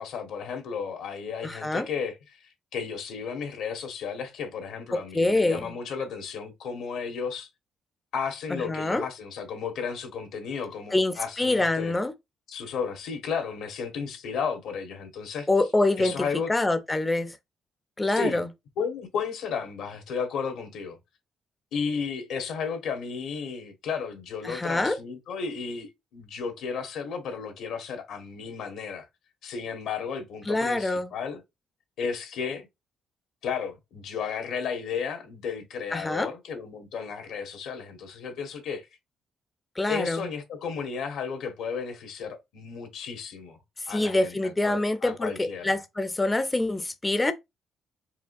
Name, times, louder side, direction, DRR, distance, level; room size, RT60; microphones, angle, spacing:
voice 1, 0.0-2.2 2.7-7.5 8.1-11.9 12.5-15.5 16.0-16.5 18.2-18.4 18.8-21.0 21.7-29.1 29.4-31.4 32.0-32.7 33.4-38.9 39.9-43.6 43.9-45.7, left 6 dB, 80° left, 1.3 m, -33 dB
voice 2, 1.4-1.9 4.9-5.7 8.5-9.0 10.9-12.1 15.5-17.4 18.0-18.5 24.4-25.0 30.5-31.1 35.9-36.3 39.8-40.3 43.8-47.3, left 2 dB, 15° left, 0.4 m, -26 dB
4.8 x 3.5 x 2.5 m
cardioid pair, 90°, 0 cm